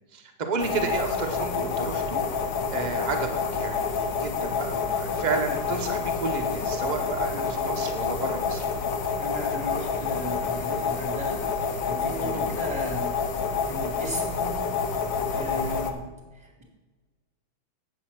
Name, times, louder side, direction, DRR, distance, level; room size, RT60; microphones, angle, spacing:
voice 1, 0.1-2.2 2.7-8.7 12.1-12.5, right 4 dB, 45° right, 4 dB, 0.6 m, -32 dB
sound 1, 0.6-15.9, left 5 dB, 70° left, 1.5 m, -28 dB
voice 2, 9.2-13.3 13.6-14.7 15.3-16.0 16.3-16.6, equal, 15° right, 0 dB, 1.7 m, -36 dB
8.0 x 7.3 x 5.7 m, 1.3 s
omnidirectional pair, 2.2 m